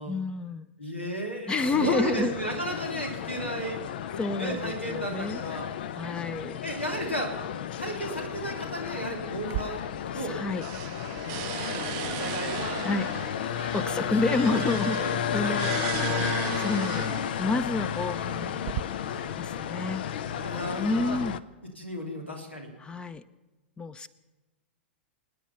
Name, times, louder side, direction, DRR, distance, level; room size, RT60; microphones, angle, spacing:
voice 1, 0.1-0.7 1.5-2.3 4.2-5.4 5.9-6.6 10.3-10.6 12.8-13.1 13.7-15.0 15.3-15.7 16.6-17.1 17.4-18.5 19.4-20.0 20.8-21.4 22.8-23.2 23.8-24.1, left 3 dB, 15° left, 17 dB, 0.7 m, -29 dB
voice 2, 0.8-3.8 4.4-5.7 6.6-7.3 7.8-9.8 10.1-10.4 11.6-11.8 12.2-12.8 13.9-16.3 18.1-18.5 19.1-19.3 20.3-21.2 21.8-22.7, right 1 dB, 90° left, 2 dB, 2.8 m, -34 dB
sound 1, 1.6-21.4, left 9 dB, 55° left, 0.6 m, -33 dB
sound 2, 9.4-10.3 10.6-17.4 18.2-18.8, right 18 dB, 40° right, 0.6 m, -36 dB
27.5 x 9.4 x 5.7 m, 1.1 s
figure-of-eight pair, 100°, 6 cm